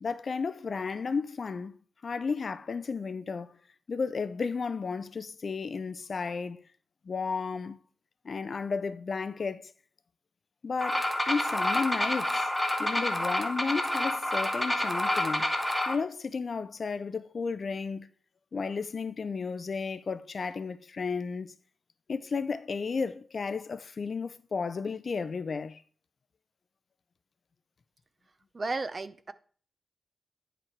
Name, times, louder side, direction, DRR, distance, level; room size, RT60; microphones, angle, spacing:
voice 1, 0.0-1.8 2.0-3.6 3.9-6.6 7.1-7.8 8.2-9.7 10.6-12.5 12.8-15.6 15.9-18.1 18.5-21.5 22.1-25.8, left 5 dB, 50° left, 0.5 m, -33 dB
sound 1, 10.8-15.9, left 1 dB, 5° left, 1.1 m, -28 dB
voice 2, 28.5-29.3, right 3 dB, 35° right, 0.6 m, -33 dB
10.0 x 5.0 x 4.5 m
wide cardioid pair, 125°, 0 cm